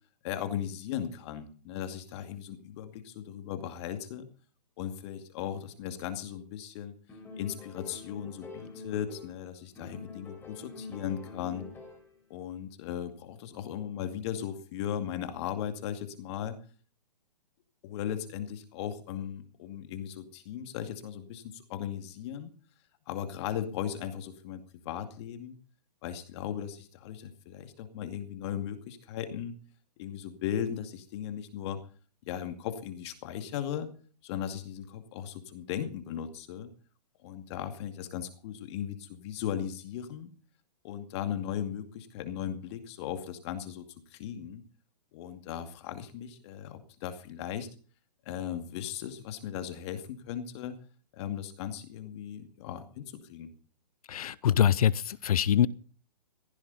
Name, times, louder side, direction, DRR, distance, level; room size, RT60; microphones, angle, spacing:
voice 1, 0.2-4.3 4.8-6.9 7.4-11.7 12.3-16.6 17.8-22.5 23.1-25.6 26.0-29.6 30.0-31.8 32.3-33.9 34.2-36.7 37.2-40.3 40.8-44.6 45.1-47.7 48.3-50.8 51.1-53.5, left 10 dB, 40° left, 2.4 m, -37 dB
sound 1, 7.1-9.4 9.7-12.2, left 4 dB, 10° left, 4.8 m, -46 dB
voice 2, 54.1-55.7, left 9 dB, 60° left, 0.8 m, -24 dB
16.0 x 15.0 x 4.2 m
hypercardioid pair, 135°, 21 cm